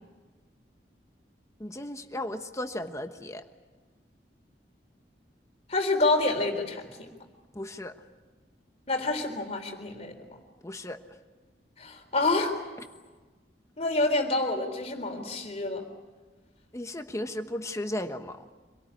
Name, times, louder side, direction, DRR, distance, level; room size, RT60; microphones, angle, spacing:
voice 1, 1.6-3.4 7.5-7.9 10.6-11.0 16.7-18.4, left 1 dB, 15° left, 7 dB, 1.2 m, -35 dB
voice 2, 5.7-7.1 8.9-10.2 11.8-12.5 13.8-15.8, left 2 dB, 35° left, 3 dB, 3.9 m, -27 dB
26.5 x 18.0 x 9.9 m, 1.3 s
head